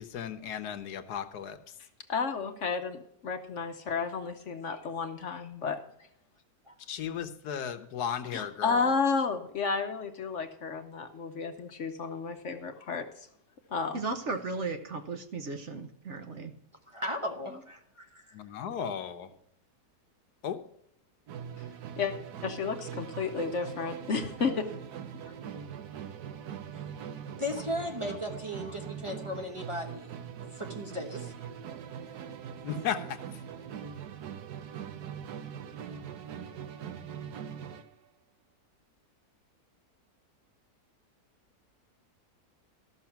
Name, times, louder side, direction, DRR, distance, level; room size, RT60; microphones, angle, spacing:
voice 1, 0.0-1.7 6.8-8.9 18.3-19.3 20.4-20.6 32.6-33.4, left 8 dB, 80° left, 10 dB, 1.4 m, -35 dB
voice 2, 2.1-5.8 8.3-13.3 13.7-14.0 22.0-22.1 22.4-24.7, left 5 dB, 55° left, 7 dB, 1.0 m, -32 dB
voice 3, 13.9-16.5, right 3 dB, 50° right, 7 dB, 1.2 m, -35 dB
voice 4, 16.9-18.4 27.3-31.3, left 1 dB, 20° right, 2 dB, 1.0 m, -37 dB
Musical instrument, 21.3-37.9, right 8 dB, 75° right, 1.3 m, -42 dB
13.5 x 6.4 x 5.8 m, 0.72 s
omnidirectional pair, 1.7 m